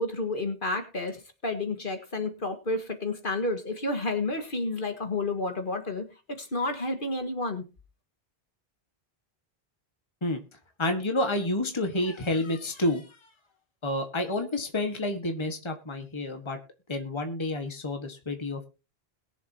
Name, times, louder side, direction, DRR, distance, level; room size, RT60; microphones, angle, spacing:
voice 1, 0.0-7.7, left 2 dB, 55° left, 6 dB, 1.9 m, -31 dB
voice 2, 10.8-13.2 13.8-16.6 16.9-18.7, left 1 dB, 25° left, 5 dB, 1.6 m, -29 dB
21.5 x 7.3 x 2.8 m, 0.30 s
omnidirectional pair, 1.1 m